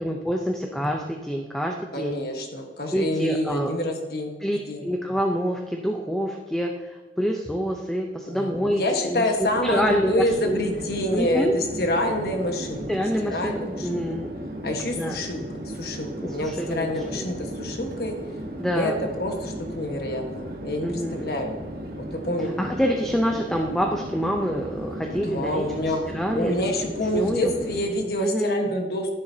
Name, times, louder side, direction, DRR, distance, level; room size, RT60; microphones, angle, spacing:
voice 1, 0.0-2.2 2.9-3.7 4.4-10.6 11.1-11.5 12.9-14.4 14.9-15.2 16.2-17.3 18.6-19.0 20.8-21.3 22.6-26.5 27.1-27.5 28.2-28.7, equal, 5° left, 2 dB, 0.6 m, -27 dB
voice 2, 1.9-4.4 4.7-4.9 8.3-12.9 13.2-14.0 14.6-18.1 18.7-18.9 19.2-21.5 22.0-22.5 25.2-26.0 26.3-29.1, left 1 dB, 60° left, 3 dB, 1.4 m, -27 dB
Chatter / Fixed-wing aircraft airplane, 9.3-28.2, equal, 55° right, 1.4 m, -36 dB
11.5 x 10.5 x 2.8 m, 1.3 s
head